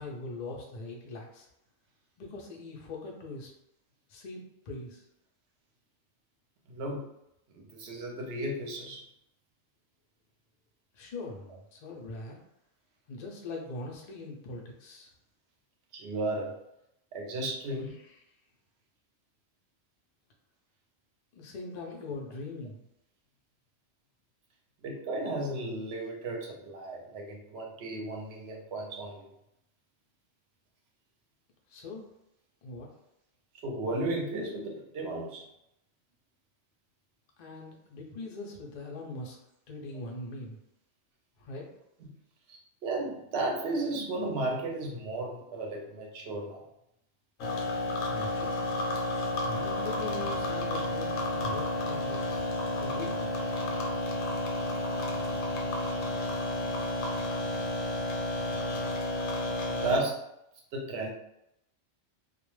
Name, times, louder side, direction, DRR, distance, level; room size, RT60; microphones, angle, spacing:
voice 1, 0.0-1.5 2.2-3.5 4.1-5.0 11.0-12.4 13.1-15.1 21.4-22.8 31.7-32.1 32.6-32.9 37.4-39.4 39.7-40.6 41.4-41.7 48.1-48.6 49.4-52.4 52.8-53.3, left 2 dB, 55° left, 0 dB, 0.4 m, -41 dB
voice 2, 6.7-7.0 7.5-9.0 15.9-16.5 17.1-17.9 24.8-29.3 33.6-35.4 42.0-42.1 42.5-46.6 59.7-60.2 60.7-61.1, right 2 dB, 60° right, 0 dB, 0.8 m, -34 dB
sound 1, 47.4-60.0, left 1 dB, 75° left, 1.0 m, -31 dB
2.3 x 2.2 x 3.1 m, 0.82 s
omnidirectional pair, 1.4 m